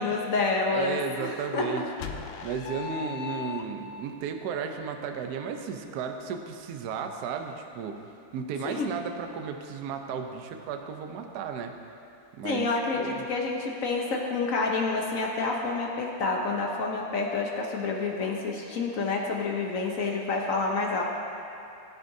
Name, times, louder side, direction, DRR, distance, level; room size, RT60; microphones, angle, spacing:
voice 1, 0.0-1.7 8.6-8.9 12.4-21.0, left 3 dB, 60° left, 0 dB, 0.9 m, -28 dB
voice 2, 0.7-1.8 2.4-8.1 8.3-11.8 12.4-12.7 13.0-13.3, right 6 dB, 65° right, 5 dB, 1.0 m, -34 dB
sound 1, 2.0-4.1, left 9 dB, 80° left, 1.4 m, -37 dB
16.0 x 8.4 x 2.7 m, 2.7 s
omnidirectional pair, 2.2 m